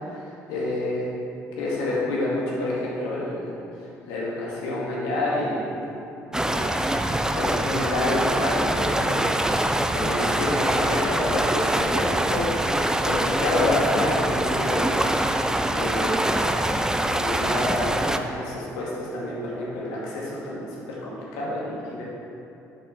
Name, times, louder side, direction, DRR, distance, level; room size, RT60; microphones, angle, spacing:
voice 1, 0.1-1.1 1.6-3.5 4.1-5.8 6.3-15.0 15.7-16.3 17.0-22.0, left 1 dB, 75° left, -6 dB, 2.1 m, -28 dB
sound 1, 6.3-18.2, right 1 dB, 10° right, 0.6 m, -24 dB
9.8 x 7.7 x 3.4 m, 2.8 s
hypercardioid pair, 50°, 8 cm